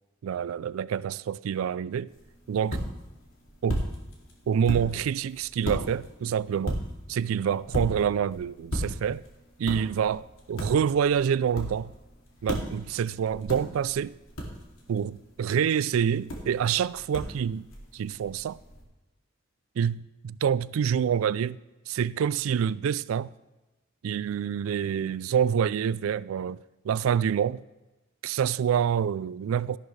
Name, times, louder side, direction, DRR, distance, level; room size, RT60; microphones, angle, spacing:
voice 1, 0.2-2.1 2.5-2.8 3.6-3.9 4.5-6.8 7.1-9.2 9.6-11.9 12.4-14.2 14.9-17.7 17.9-18.6 19.8-21.6 21.9-23.4 24.0-27.6 28.2-29.8, right 8 dB, 85° right, 0.3 m, -27 dB
sound 1, 2.1-18.8, equal, 85° left, 2.5 m, -37 dB
13.0 x 11.0 x 3.2 m
head